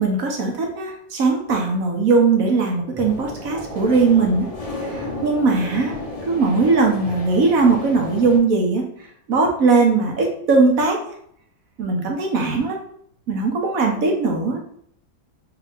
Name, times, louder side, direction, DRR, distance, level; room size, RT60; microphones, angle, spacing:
voice 1, 0.0-4.5 4.9-8.9 9.3-11.0 11.8-12.8 13.3-14.6, right 4 dB, 60° right, 2 dB, 1.2 m, -19 dB
sound 1, 3.0-8.4, left 2 dB, 35° left, 0.6 m, -32 dB
4.8 x 2.8 x 3.4 m, 0.65 s
omnidirectional pair, 1.8 m